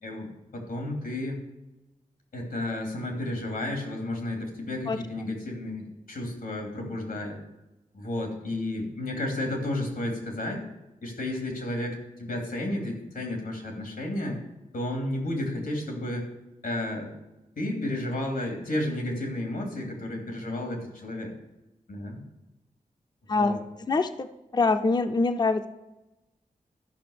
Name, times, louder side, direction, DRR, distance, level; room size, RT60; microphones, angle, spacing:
voice 1, 0.0-1.4 2.3-7.4 7.9-10.6 11.0-14.4 14.7-16.3 16.6-17.1 17.6-21.3 21.9-22.2 23.3-23.6, left 1 dB, 90° left, 2 dB, 2.9 m, -32 dB
voice 2, 4.9-5.3 23.3-23.6 23.9-24.3 24.5-25.7, left 3 dB, 30° left, 9 dB, 0.5 m, -25 dB
12.0 x 5.6 x 6.6 m, 0.98 s
wide cardioid pair, 120°, 15 cm